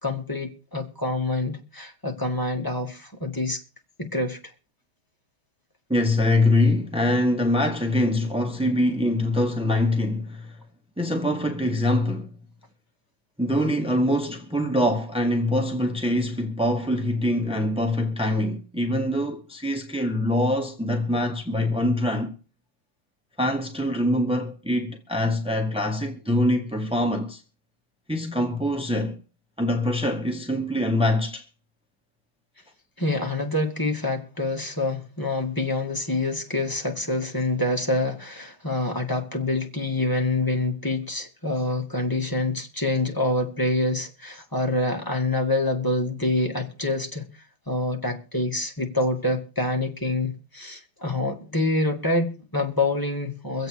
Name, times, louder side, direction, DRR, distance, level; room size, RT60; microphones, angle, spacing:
voice 1, 0.0-3.6 4.0-4.4 33.0-47.3 47.7-53.7, left 2 dB, 10° left, 1.8 m, -26 dB
voice 2, 5.9-10.6 11.0-12.3 13.4-22.3 23.4-27.4 28.1-29.2 29.6-31.4, left 1 dB, 5° right, 0.6 m, -24 dB
24.0 x 8.1 x 4.6 m
omnidirectional pair, 2.1 m